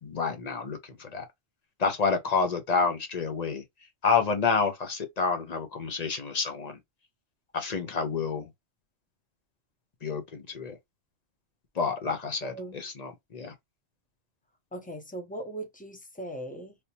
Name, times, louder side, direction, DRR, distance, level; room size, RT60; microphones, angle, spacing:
voice 1, 0.0-1.3 1.8-3.6 4.0-6.8 7.5-8.5 10.0-10.8 11.8-13.5, left 5 dB, 40° left, 0.8 m, -29 dB
voice 2, 12.4-12.8 14.7-16.8, right 1 dB, 10° left, 0.7 m, -39 dB
3.4 x 2.7 x 2.8 m
omnidirectional pair, 1.2 m